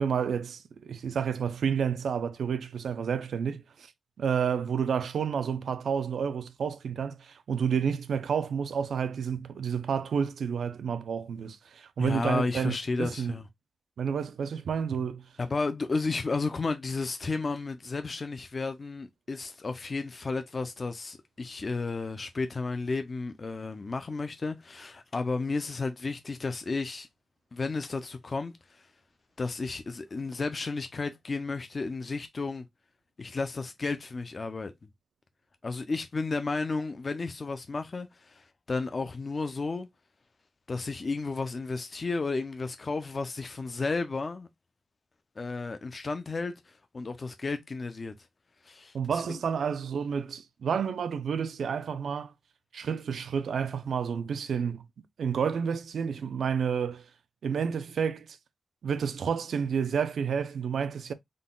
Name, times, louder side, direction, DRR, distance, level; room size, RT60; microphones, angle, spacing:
voice 1, 0.0-3.9 4.2-13.3 14.0-15.3 48.9-52.3 52.7-54.8 55.2-57.1 57.4-58.4 58.8-61.1, right 7 dB, 75° right, 0.4 m, -30 dB
voice 2, 12.0-13.4 15.4-27.1 27.5-28.9 29.4-32.7 33.2-34.7 35.6-39.9 40.7-44.5 45.4-48.1 48.6-49.4, left 3 dB, 35° left, 0.4 m, -33 dB
3.8 x 2.2 x 3.7 m
wide cardioid pair, 125°, 0 cm